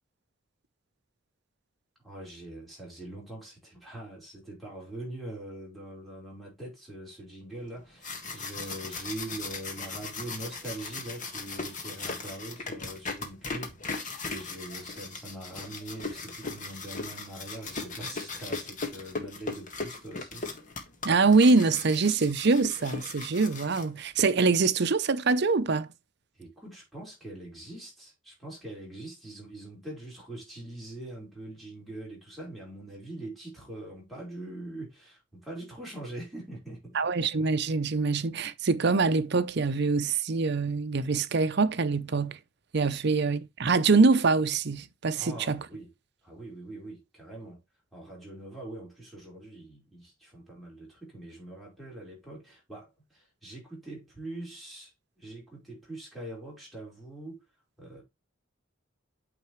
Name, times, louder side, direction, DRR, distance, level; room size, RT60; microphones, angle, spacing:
voice 1, 2.0-20.5 26.3-37.0 42.9-43.0 45.2-45.9 46.2-47.6 47.9-57.4 57.8-58.0, right 1 dB, ahead, 4.8 m, -43 dB
sound 1, 7.8-24.2, left 3 dB, 40° left, 1.7 m, -38 dB
voice 2, 21.0-25.9 36.9-42.4 42.7-45.6, right 4 dB, 55° right, 0.7 m, -24 dB
8.9 x 5.8 x 3.2 m
head